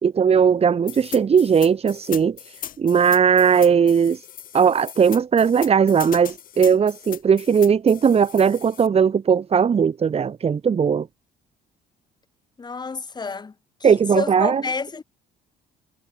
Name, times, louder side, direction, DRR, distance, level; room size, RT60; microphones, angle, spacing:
voice 1, 0.0-4.2 4.5-11.1 13.8-14.6, right 7 dB, 35° right, 3.2 m, -18 dB
sound 1, 0.9-8.9, left 10 dB, 55° left, 7.6 m, -38 dB
voice 2, 12.6-13.5 13.8-15.0, left 4 dB, 25° left, 5.0 m, -29 dB
cardioid pair, 110°, 17 cm